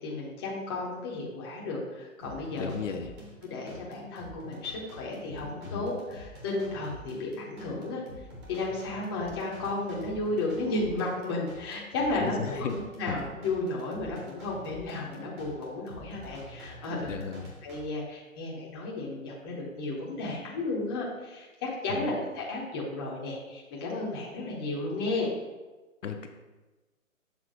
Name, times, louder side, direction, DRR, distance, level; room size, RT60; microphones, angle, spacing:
voice 1, 0.0-2.8 3.4-8.0 8.5-17.3 17.6-25.3, left 2 dB, 15° left, -3 dB, 0.7 m, -33 dB
sound 1, 2.2-17.8, equal, 20° right, 1.0 m, -47 dB
voice 2, 2.6-3.1 5.6-5.9 12.1-12.7 13.1-13.2 17.0-17.5 21.9-22.1 26.0-26.3, left 6 dB, 60° left, 4 dB, 0.7 m, -34 dB
6.6 x 3.4 x 4.8 m, 1.2 s
hypercardioid pair, 145°, 43 cm